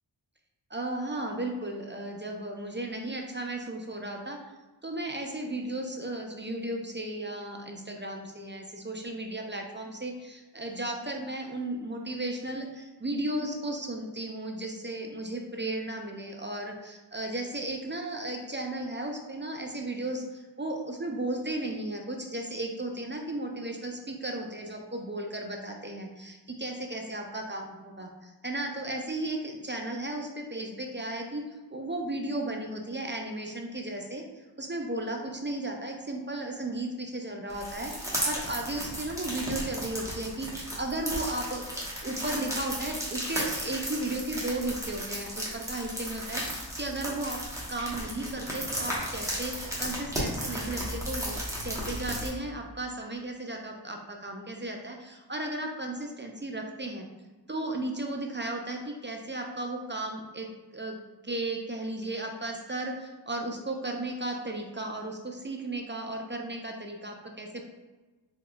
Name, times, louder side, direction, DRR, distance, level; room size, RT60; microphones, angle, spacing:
voice 1, 0.7-4.4 4.8-47.4 47.7-57.1 57.5-61.0 61.2-67.6, right 2 dB, 25° right, 2 dB, 0.4 m, -35 dB
sound 1, 37.5-52.3, equal, 5° right, 1.2 m, -35 dB
3.7 x 3.5 x 2.4 m, 1.2 s
wide cardioid pair, 50°, 43 cm